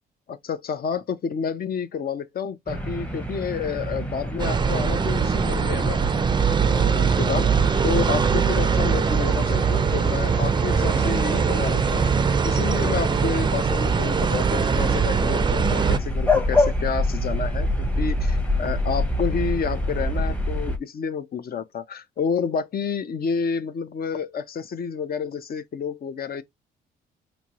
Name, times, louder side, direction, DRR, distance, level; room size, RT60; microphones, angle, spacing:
voice 1, 0.3-6.0 6.6-12.1 12.4-26.4, left 6 dB, 50° left, 0.6 m, -29 dB
sound 1, 2.7-20.8, left 1 dB, 5° left, 0.8 m, -27 dB
sound 2, 4.4-16.0, right 6 dB, 25° right, 0.4 m, -22 dB
4.3 x 2.6 x 2.9 m
cardioid pair, 90°, 20 cm